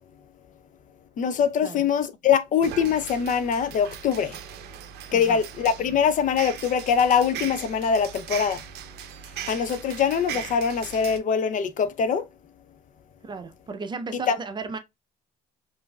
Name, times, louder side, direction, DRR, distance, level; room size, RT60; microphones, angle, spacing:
voice 1, 1.2-4.4 5.1-8.6 9.5-12.3 14.3-14.4, left 7 dB, 50° left, 0.5 m, -23 dB
sound 1, 2.6-11.2, right 10 dB, 75° right, 0.6 m, -39 dB
voice 2, 5.1-5.4 13.2-14.8, right 4 dB, 25° right, 0.5 m, -35 dB
5.1 x 2.6 x 2.2 m
cardioid pair, 110°, 17 cm